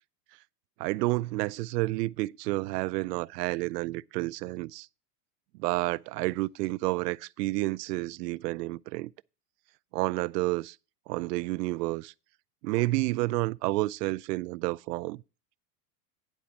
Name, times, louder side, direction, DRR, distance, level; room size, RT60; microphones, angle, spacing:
voice 1, 0.8-4.9 5.6-9.1 9.9-10.8 11.1-12.1 12.6-15.2, right 20 dB, 85° right, 0.5 m, -30 dB
10.5 x 4.2 x 7.1 m
supercardioid pair, 170°, 47 cm